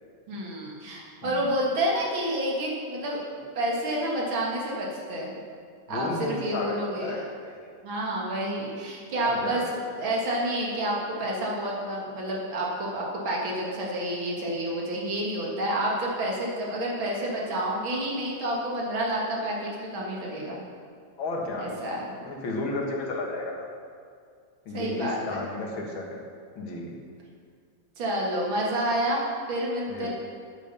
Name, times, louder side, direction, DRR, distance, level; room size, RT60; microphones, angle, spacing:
voice 1, 0.3-5.4 5.9-7.2 7.8-20.6 21.6-22.2 24.7-25.4 28.0-30.1, right 1 dB, 85° right, -3 dB, 2.7 m, -29 dB
voice 2, 5.9-7.6 9.2-9.6 21.2-21.7 22.2-23.7 24.7-26.2 26.6-27.0 29.9-30.1, left 2 dB, 80° left, -1 dB, 2.5 m, -33 dB
8.9 x 8.6 x 6.8 m, 2.1 s
omnidirectional pair, 2.1 m